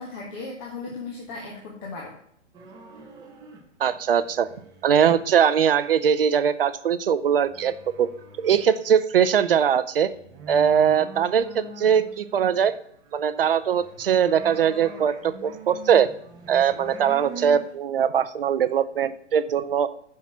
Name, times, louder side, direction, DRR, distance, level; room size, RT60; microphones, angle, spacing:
voice 1, 0.0-2.2, left 3 dB, 25° left, -2 dB, 1.5 m, -36 dB
sound 1, 2.5-3.6 3.9-5.4 6.7-6.8 7.3-8.8 9.2-9.3 9.5-17.7, right 3 dB, 10° right, 0.9 m, -43 dB
voice 2, 3.8-4.5 4.8-8.1 8.4-10.1 10.5-12.7 13.1-16.1 16.5-19.9, right 8 dB, 50° right, 14 dB, 0.7 m, -21 dB
7.0 x 5.9 x 6.0 m, 0.69 s
figure-of-eight pair, 130°, 37 cm